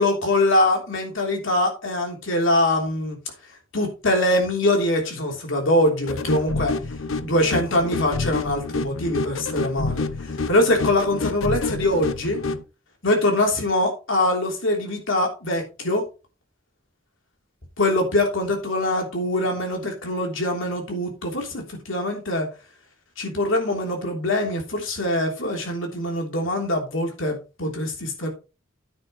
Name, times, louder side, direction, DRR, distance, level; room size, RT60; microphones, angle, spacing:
voice 1, 0.0-3.2 3.7-6.7 7.2-12.4 13.0-16.0 17.8-22.5 23.2-28.3, left 1 dB, 70° left, 3.3 m, -23 dB
sound 1, 6.1-12.6, left 3 dB, 85° left, 0.9 m, -28 dB
9.7 x 9.6 x 3.1 m
head